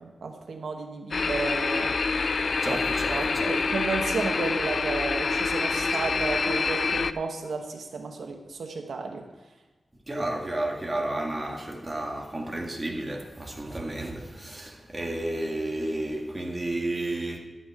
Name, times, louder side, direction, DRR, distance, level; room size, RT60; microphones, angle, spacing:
voice 1, 0.0-2.0 2.7-9.3, right 4 dB, 80° right, 1.0 m, -33 dB
sound 1, 1.1-7.1, left 4 dB, 55° left, 0.4 m, -26 dB
voice 2, 2.6-3.5 10.1-17.4, right 1 dB, 20° right, 1.7 m, -32 dB
11.5 x 8.7 x 4.7 m
wide cardioid pair, 115°, 0 cm